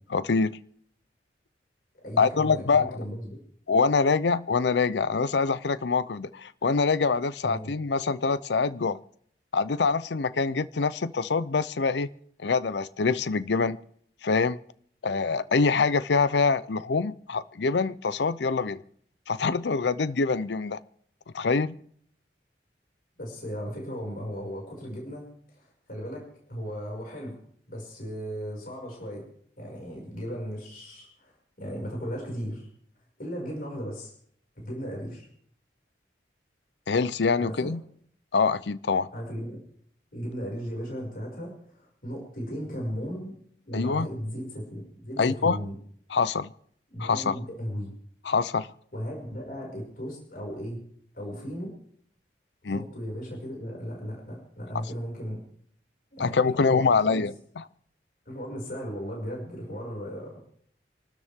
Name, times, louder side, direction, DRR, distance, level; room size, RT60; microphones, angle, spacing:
voice 1, 0.1-0.5 2.2-3.0 3.7-9.0 9.5-12.1 12.4-13.8 14.2-14.6 15.0-18.8 19.3-20.8 21.3-21.7 36.9-37.8 38.3-39.1 43.7-44.1 45.2-45.6 46.1-46.5 47.0-47.3 48.2-48.7 52.6-52.8 56.2-57.6, left 4 dB, 75° left, 16 dB, 0.6 m, -25 dB
voice 2, 2.0-3.4 7.4-7.7 23.2-25.3 25.5-27.4 27.7-29.3 29.6-31.3 31.6-32.7 33.2-34.1 34.6-35.3 37.4-37.7 39.1-39.6 40.1-43.3 43.7-45.7 46.9-47.9 48.9-50.8 51.1-51.7 52.6-55.4 56.1-57.2 58.3-60.4, equal, 55° left, -1 dB, 5.8 m, -36 dB
27.5 x 13.0 x 3.6 m, 0.63 s
head